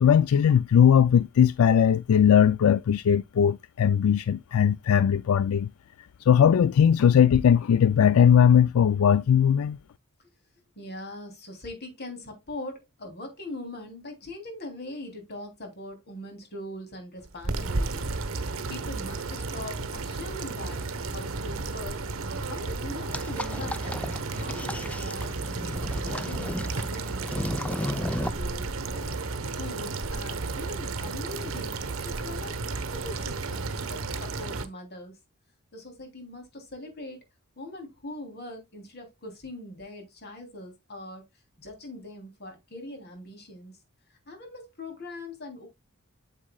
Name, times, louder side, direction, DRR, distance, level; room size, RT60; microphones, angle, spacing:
voice 1, 0.0-5.7 6.3-9.8, left 8 dB, 80° left, 0.4 m, -19 dB
voice 2, 10.8-22.0 22.5-25.3 25.6-27.3 27.6-35.2 35.7-37.2 37.6-41.3 41.6-43.8 44.3-45.7, left 2 dB, 50° left, 3.0 m, -42 dB
sound 1, 17.2-34.7, right 3 dB, 65° right, 1.0 m, -33 dB
sound 2, 23.1-28.3, left 1 dB, 5° left, 0.4 m, -34 dB
8.7 x 7.5 x 2.2 m
head